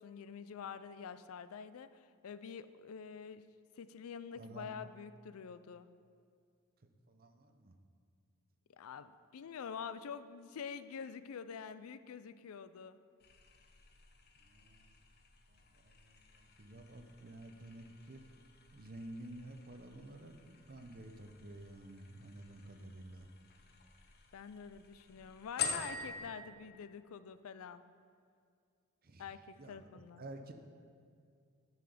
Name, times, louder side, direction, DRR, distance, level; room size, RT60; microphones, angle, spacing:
voice 1, 0.0-3.4 3.8-5.9 8.8-13.0 24.3-27.8 29.2-30.3, left 6 dB, 80° left, 13 dB, 0.4 m, -47 dB
voice 2, 4.3-4.7 6.8-7.7 14.4-14.9 15.5-18.2 18.7-23.3 29.0-29.3 29.6-29.9 30.2-30.5, right 1 dB, 45° right, 6 dB, 0.7 m, -51 dB
sound 1, 13.2-26.2, left 6 dB, 45° left, 0.7 m, -47 dB
9.2 x 5.9 x 5.0 m, 2.3 s
head